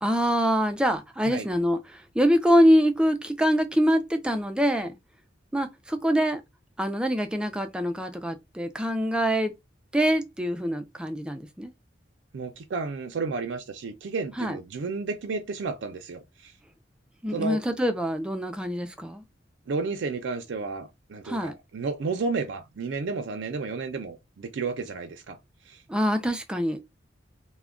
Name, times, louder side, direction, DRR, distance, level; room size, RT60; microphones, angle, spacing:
voice 1, 0.0-4.9 5.5-6.4 6.8-9.5 9.9-11.7 14.4-14.6 17.2-19.2 21.2-21.5 25.9-26.8, equal, 5° right, 0.3 m, -24 dB
voice 2, 12.3-16.5 17.3-17.6 19.7-25.4 25.7-25.8, right 4 dB, 75° right, 0.4 m, -32 dB
2.2 x 2.1 x 3.5 m
head